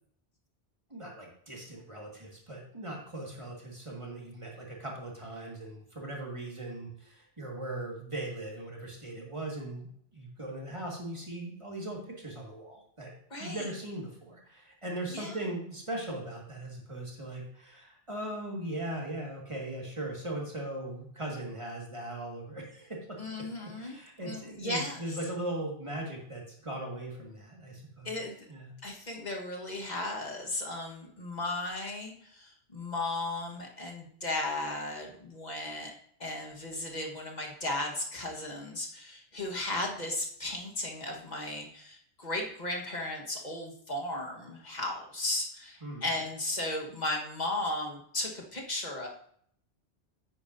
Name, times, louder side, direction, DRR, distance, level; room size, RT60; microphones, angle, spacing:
voice 1, 0.9-9.9 10.1-13.1 13.4-23.2 23.8-28.2 28.5-28.7 45.8-46.0, right 1 dB, 30° right, -1 dB, 2.0 m, -39 dB
voice 2, 13.3-13.7 15.1-15.3 23.2-25.0 28.0-28.4 28.8-35.9 36.2-49.1, left 2 dB, 40° left, 0 dB, 1.6 m, -35 dB
9.6 x 8.9 x 2.7 m, 0.65 s
omnidirectional pair, 1.1 m